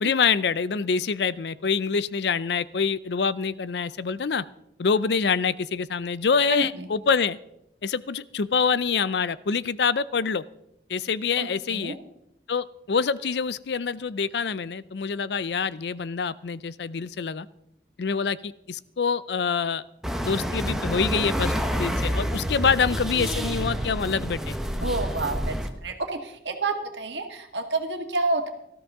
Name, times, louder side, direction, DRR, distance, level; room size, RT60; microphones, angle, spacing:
voice 1, 0.0-4.4 4.8-7.4 7.8-10.4 10.9-12.0 12.5-17.5 18.0-19.8 20.2-24.5, left 5 dB, 75° left, 18 dB, 0.5 m, -26 dB
voice 2, 6.5-6.9 11.4-12.0 24.8-25.6 25.8-28.5, right 3 dB, 85° right, 5 dB, 1.8 m, -29 dB
sound 1, 20.0-25.7, equal, 5° right, 1.0 m, -28 dB
18.5 x 13.5 x 3.7 m, 0.80 s
head